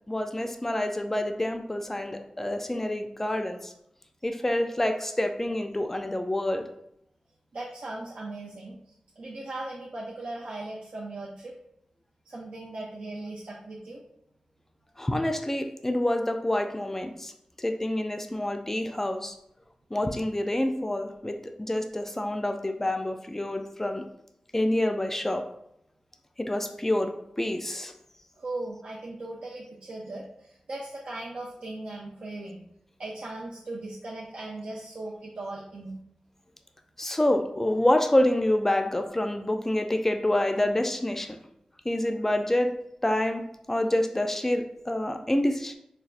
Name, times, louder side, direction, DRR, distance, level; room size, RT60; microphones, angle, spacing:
voice 1, 0.1-3.7 4.2-6.7 15.0-17.3 17.6-19.3 19.9-24.0 24.5-25.4 26.4-27.9 37.0-41.4 41.8-42.7 43.0-43.4 43.7-45.8, left 1 dB, 15° left, 6 dB, 0.3 m, -27 dB
voice 2, 7.5-11.5 12.3-14.0 28.4-32.6 33.0-36.0, right 2 dB, 75° right, -4 dB, 0.5 m, -38 dB
4.1 x 2.2 x 2.4 m, 0.76 s
wide cardioid pair, 75°, 2 cm